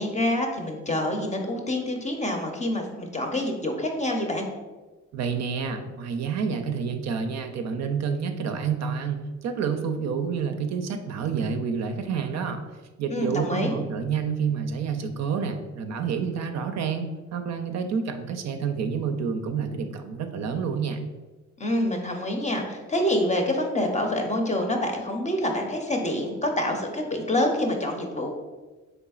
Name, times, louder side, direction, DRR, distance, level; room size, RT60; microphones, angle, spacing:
voice 1, 0.0-4.5 13.1-13.7 21.6-28.3, left 1 dB, 25° left, 3 dB, 0.6 m, -26 dB
voice 2, 5.1-12.6 13.0-21.0, right 6 dB, 60° right, 7 dB, 0.4 m, -28 dB
3.9 x 3.5 x 2.3 m, 1.2 s
cardioid pair, 90°, 30 cm